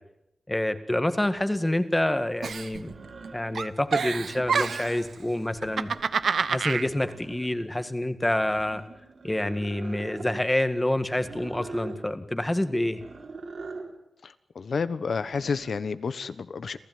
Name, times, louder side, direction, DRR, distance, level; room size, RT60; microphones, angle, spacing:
voice 1, 0.5-2.9 3.3-5.9 6.4-8.8 9.2-13.0, left 1 dB, 15° left, 10 dB, 1.8 m, -27 dB
sound 1, 1.3-1.4 2.7-3.6 4.1-5.1 5.5-6.4 6.8-7.8 8.3-10.4 11.2-12.0 12.8-13.9 15.1-15.8, right 3 dB, 65° right, 4.5 m, -43 dB
Giggle, 2.4-3.3 3.5-5.0 5.6-6.9, right 6 dB, 80° right, 1.0 m, -27 dB
voice 2, 14.2-16.8, left 5 dB, 70° left, 14 dB, 1.2 m, -30 dB
28.0 x 15.5 x 9.4 m, 0.85 s
wide cardioid pair, 90°, 0 cm